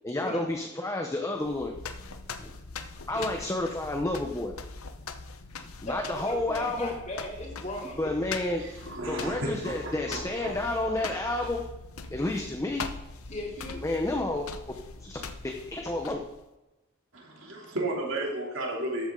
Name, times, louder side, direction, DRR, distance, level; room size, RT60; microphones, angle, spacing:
voice 1, 0.0-1.8 2.4-2.5 3.1-4.5 5.8-6.9 8.0-8.6 8.9-11.6 12.1-12.9 13.8-14.5 15.0-16.2, left 2 dB, 15° left, 2 dB, 0.8 m, -30 dB
sound 1, 1.4-16.5, left 4 dB, 85° left, 0.9 m, -42 dB
voice 2, 5.8-8.1 13.3-13.8, left 1 dB, 35° left, -2 dB, 2.8 m, -37 dB
voice 3, 8.6-10.5 11.0-11.5 17.1-19.1, right 1 dB, 65° right, -1 dB, 3.0 m, -34 dB
13.0 x 8.6 x 3.8 m, 1.0 s
head